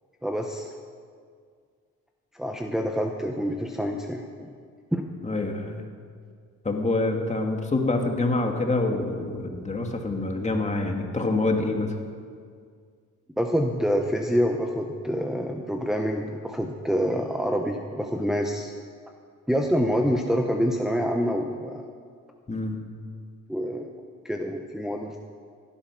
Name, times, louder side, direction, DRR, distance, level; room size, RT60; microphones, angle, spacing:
voice 1, 0.2-0.7 2.3-4.5 4.9-5.0 13.4-18.7 19.5-21.8 23.5-23.9 24.2-25.2, equal, ahead, 1 dB, 1.0 m, -26 dB
voice 2, 5.2-5.8 6.6-12.0 22.5-22.8, left 2 dB, 25° left, 2 dB, 2.1 m, -26 dB
15.5 x 12.0 x 6.1 m, 2.1 s
cardioid pair, 90°, 30 cm